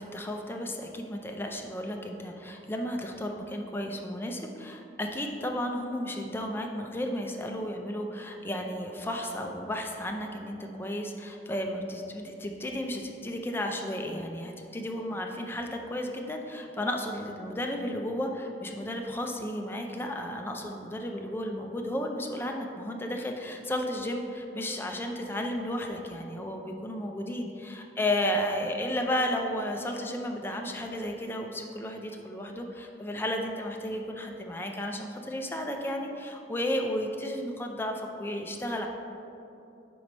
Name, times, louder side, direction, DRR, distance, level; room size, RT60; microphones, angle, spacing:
voice 1, 0.0-38.9, left 1 dB, 15° left, 3 dB, 0.4 m, -33 dB
4.6 x 4.2 x 5.1 m, 2.8 s
head